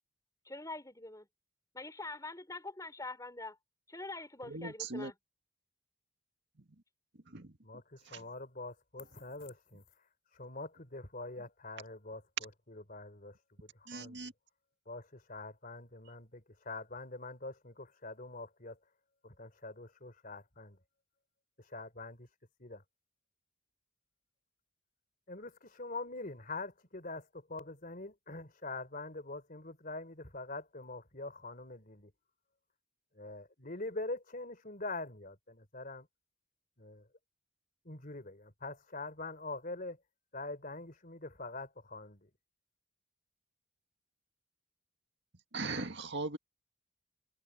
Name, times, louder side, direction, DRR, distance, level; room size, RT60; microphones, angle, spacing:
voice 1, 0.4-1.3 1.7-3.6 3.9-5.1, left 2 dB, 15° left, 4.8 m, -44 dB
voice 2, 4.4-5.1 7.3-7.5 8.1-8.2 13.9-14.3 45.5-46.4, right 3 dB, 55° right, 2.0 m, -39 dB
voice 3, 7.6-9.8 10.3-14.2 14.9-18.8 19.2-20.8 21.6-22.3 22.6-22.8 25.3-32.1 33.1-36.1 36.8-37.1 37.9-40.0 40.3-42.3, left 2 dB, 40° left, 3.6 m, -44 dB
head